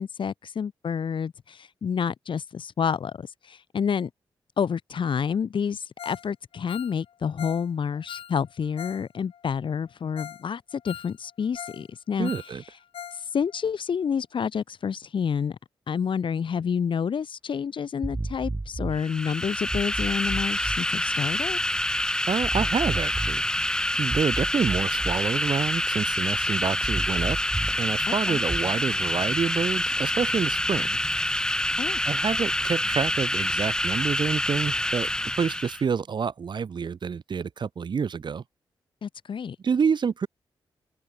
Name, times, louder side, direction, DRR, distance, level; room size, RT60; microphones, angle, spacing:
voice 1, 0.0-4.1 4.6-12.3 13.3-15.6 15.9-21.6 28.1-28.4 31.8-32.0 39.0-39.6, left 7 dB, 60° left, 1.4 m, -29 dB
Ringtone, 6.0-6.3 6.5-9.0 9.3-9.4 9.9-10.0 10.2-10.4 10.7-11.8 12.1-13.2 13.5-13.6 14.0-14.1, left 9 dB, 80° left, 6.4 m, -41 dB
voice 2, 12.2-12.6 22.3-23.4 24.0-27.4 27.8-31.0 32.0-35.1 35.4-38.4 39.6-40.3, right 6 dB, 55° right, 1.0 m, -28 dB
sound 1, 18.0-19.0 19.7-20.8 22.4-23.4 24.1-25.2 26.8-27.8 28.5-28.6, right 2 dB, 25° right, 5.4 m, -32 dB
sound 2, 19.0-35.8, left 1 dB, 10° left, 2.0 m, -27 dB
open air
cardioid pair, 55°, 9 cm